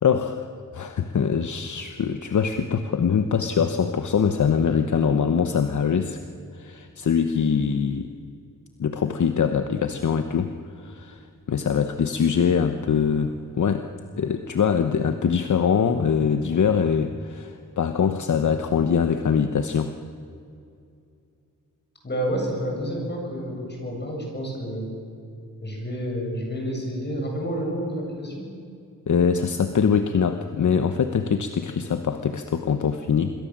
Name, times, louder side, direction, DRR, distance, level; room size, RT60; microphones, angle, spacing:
voice 1, 0.0-6.2 6.5-8.1 8.8-11.2 11.5-13.9 14.2-19.9 29.1-33.3, left 6 dB, 65° left, 8 dB, 1.1 m, -23 dB
voice 2, 22.0-24.9 25.6-28.5, equal, 30° left, 0 dB, 7.4 m, -29 dB
27.0 x 22.0 x 7.5 m, 2.5 s
wide cardioid pair, 145°, 33 cm